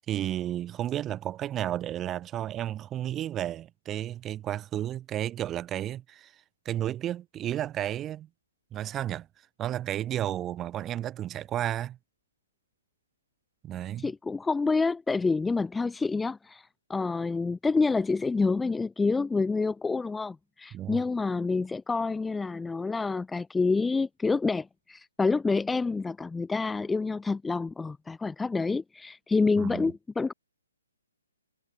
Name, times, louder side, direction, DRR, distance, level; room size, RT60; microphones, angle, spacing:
voice 1, 0.1-8.3 8.7-9.3 9.6-12.0 13.6-14.1 20.7-21.0 29.6-29.9, right 12 dB, 15° right, 1.6 m, -32 dB
voice 2, 14.0-30.3, left 4 dB, 5° left, 0.6 m, -28 dB
hypercardioid pair, 155°, 0 cm